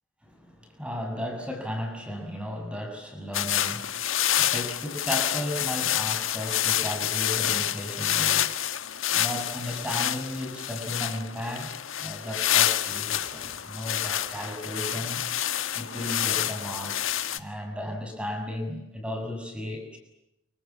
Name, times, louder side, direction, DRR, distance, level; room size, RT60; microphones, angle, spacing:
voice 1, 0.2-3.9 4.4-8.5 9.1-11.7 12.0-15.2 15.7-20.0, left 1 dB, 5° right, 4 dB, 6.8 m, -35 dB
sound 1, 3.3-17.4, left 11 dB, 90° left, 1.6 m, -28 dB
28.5 x 25.0 x 7.4 m, 0.86 s
head